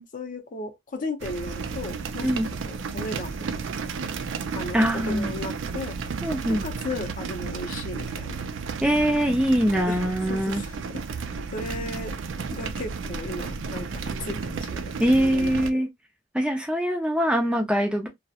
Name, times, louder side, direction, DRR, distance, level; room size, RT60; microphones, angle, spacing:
voice 1, 0.1-3.5 4.5-6.0 6.6-8.4 9.7-10.0 10.3-11.3 11.5-12.2 12.5-15.9, left 2 dB, 45° left, 0.5 m, -36 dB
sound 1, 1.2-15.7, right 5 dB, 80° right, 0.4 m, -33 dB
voice 2, 4.7-5.3 6.2-6.6 8.8-10.6 15.0-15.9 16.3-18.1, equal, 5° right, 0.4 m, -23 dB
2.3 x 2.0 x 2.7 m
head